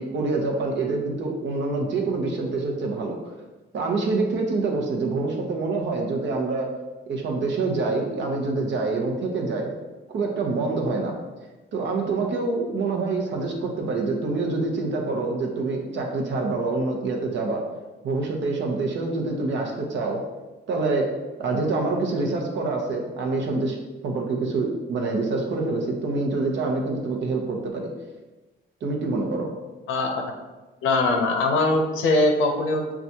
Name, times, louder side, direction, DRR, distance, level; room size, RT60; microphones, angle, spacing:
voice 1, 0.0-3.2 3.7-6.7 7.1-9.7 10.1-11.1 11.7-17.6 18.0-20.2 20.7-21.1 21.4-23.8 24.0-27.9 28.8-29.5, right 3 dB, 65° right, 1 dB, 0.8 m, -26 dB
voice 2, 29.9-30.2 30.8-32.9, left 2 dB, 85° left, 4 dB, 0.6 m, -21 dB
5.8 x 2.3 x 2.7 m, 1.2 s
cardioid pair, 90°, 20 cm